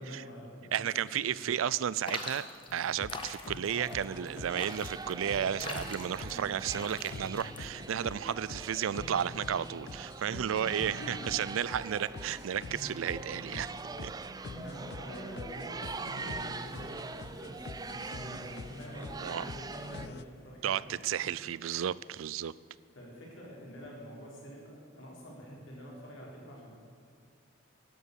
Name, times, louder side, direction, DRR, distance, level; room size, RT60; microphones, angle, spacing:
voice 1, 0.0-0.9 1.3-1.4 10.5-11.3 14.5-20.8 22.9-26.8, equal, 70° left, -3 dB, 4.1 m, -46 dB
voice 2, 0.7-2.5 2.7-13.7 14.0-14.1 19.2-19.4 20.6-22.5, right 9 dB, 80° right, 20 dB, 0.4 m, -33 dB
sound 1, 2.1-8.0, left 3 dB, 25° left, 1.2 m, -43 dB
sound 2, 2.7-20.2, left 4 dB, 55° left, 0.4 m, -46 dB
sound 3, 3.7-20.1, right 4 dB, 20° right, 0.4 m, -43 dB
12.0 x 8.1 x 8.3 m, 2.3 s
head